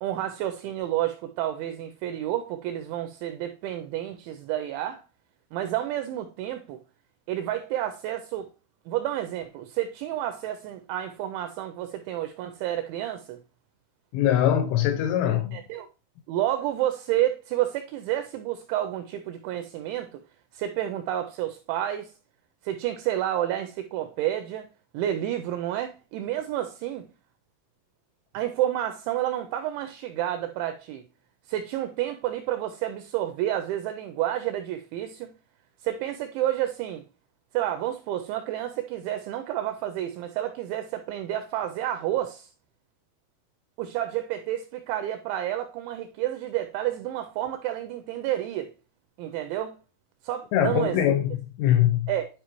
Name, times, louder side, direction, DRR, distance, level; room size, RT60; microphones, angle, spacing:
voice 1, 0.0-5.0 5.5-6.8 7.3-8.5 8.9-13.4 15.5-15.9 16.3-20.2 20.5-22.1 22.6-24.7 24.9-27.1 28.3-31.0 31.5-35.3 35.8-37.0 37.5-42.5 43.8-48.7 49.2-49.8 50.2-51.0 52.1-52.3, right 12 dB, 85° right, 2.6 m, -30 dB
voice 2, 14.1-15.6 50.5-52.1, left 11 dB, 85° left, 2.8 m, -22 dB
11.5 x 4.8 x 3.0 m
omnidirectional pair, 5.8 m